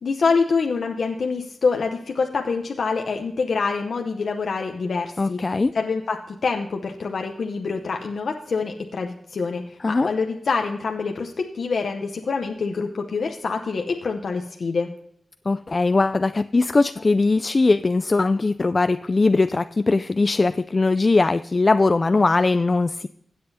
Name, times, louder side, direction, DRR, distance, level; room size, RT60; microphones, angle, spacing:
voice 1, 0.0-5.4 5.7-14.9, left 4 dB, 75° left, 3 dB, 0.7 m, -26 dB
voice 2, 5.2-5.7 9.8-10.1 15.5-23.1, left 3 dB, 45° left, 11 dB, 0.3 m, -20 dB
16.5 x 7.7 x 2.7 m, 0.74 s
cardioid pair, 45°, 0 cm